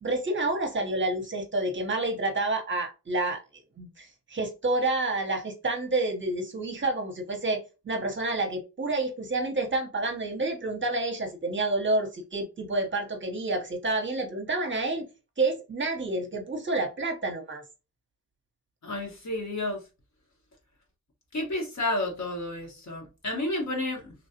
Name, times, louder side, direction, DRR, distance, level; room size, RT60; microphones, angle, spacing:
voice 1, 0.0-15.1 15.4-17.6, right 2 dB, 35° right, 0.8 m, -29 dB
voice 2, 18.8-19.8 21.3-24.1, left 2 dB, 55° left, 1.4 m, -31 dB
3.1 x 2.3 x 2.8 m
cardioid pair, 70°, 33 cm